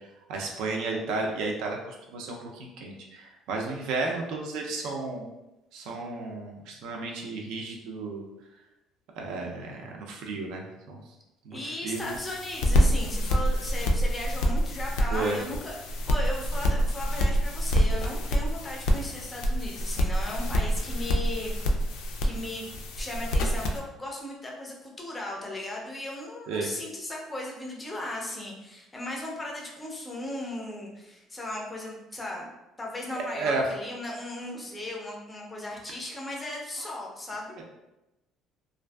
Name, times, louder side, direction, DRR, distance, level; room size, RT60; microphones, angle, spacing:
voice 1, 0.3-5.3 5.7-8.2 9.2-11.0 11.4-12.0 15.1-15.4 26.5-26.7 33.3-33.6 37.6-37.7, right 3 dB, 70° right, 1 dB, 0.4 m, -33 dB
voice 2, 11.5-21.5 22.2-22.7 23.0-32.5 32.8-37.6, left 1 dB, 10° left, -2 dB, 0.4 m, -36 dB
sound 1, 11.9-23.8, equal, 80° left, 0.3 m, -27 dB
2.5 x 2.4 x 2.2 m, 0.96 s
cardioid pair, 170°, 0 cm